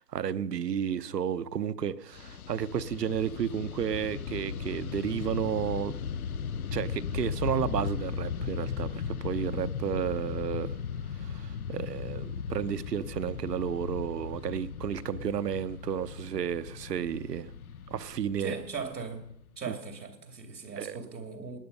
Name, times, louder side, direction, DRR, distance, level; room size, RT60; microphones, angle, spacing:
voice 1, 0.0-6.1 6.7-10.7 11.1-17.5 17.9-18.5 19.7-19.8 20.8-21.0, right 8 dB, 70° right, 0.9 m, -32 dB
Fixed-wing aircraft airplane, 2.1-19.6, left 6 dB, 60° left, 0.9 m, -37 dB
voice 2, 18.4-19.2 19.6-21.6, right 5 dB, 90° right, 2.9 m, -39 dB
18.5 x 9.2 x 5.4 m
hypercardioid pair, 165°, 50 cm